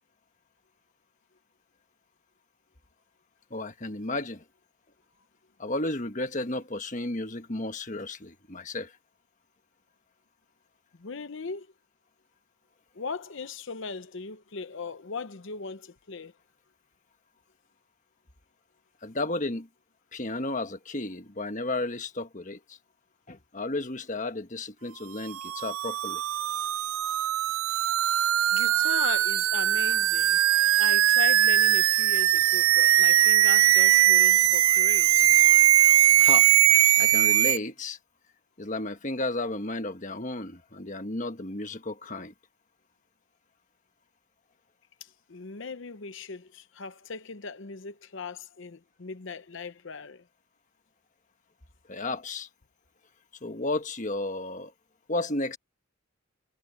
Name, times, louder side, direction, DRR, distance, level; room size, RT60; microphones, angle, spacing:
voice 1, 3.5-4.4 5.6-8.9 19.0-19.7 20.1-22.8 23.3-26.2 36.1-38.0 38.6-42.3 51.9-52.5 53.4-54.7 55.1-55.6, left 2 dB, 35° left, 1.5 m, -33 dB
voice 2, 11.0-11.7 12.9-16.3 28.5-30.4 30.8-35.3 45.0-50.2, left 4 dB, 60° left, 0.8 m, -38 dB
sound 1, 25.3-37.6, right 13 dB, 75° right, 0.4 m, -21 dB
head